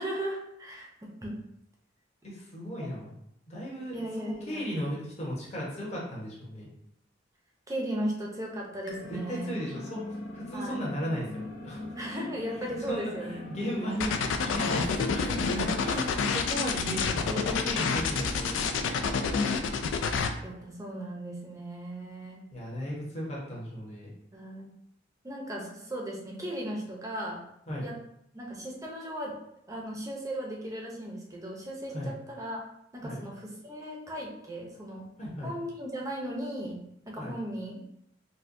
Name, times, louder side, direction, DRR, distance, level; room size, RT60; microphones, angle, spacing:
voice 1, 0.0-1.4 2.8-2.9 3.9-4.7 7.7-9.6 10.5-10.8 12.0-14.1 14.7-14.8 15.9-16.0 20.4-22.5 24.3-24.7 25.2-27.4 27.8-28.0 28.3-29.4 29.7-32.6 32.9-35.1 35.4-37.8, right 1 dB, 20° right, -2 dB, 0.6 m, -37 dB
voice 2, 2.2-3.1 3.5-6.7 9.1-10.0 10.3-11.8 12.5-18.6 22.5-24.1 27.7-27.8 31.9-32.1 33.0-33.2 35.2-35.5 37.2-37.4, equal, 35° left, -5 dB, 1.0 m, -35 dB
sound 1, 8.9-19.8, left 1 dB, 70° left, 0.8 m, -42 dB
sound 2, 14.0-20.3, left 5 dB, 90° left, 0.3 m, -28 dB
4.2 x 2.2 x 2.6 m, 0.74 s
head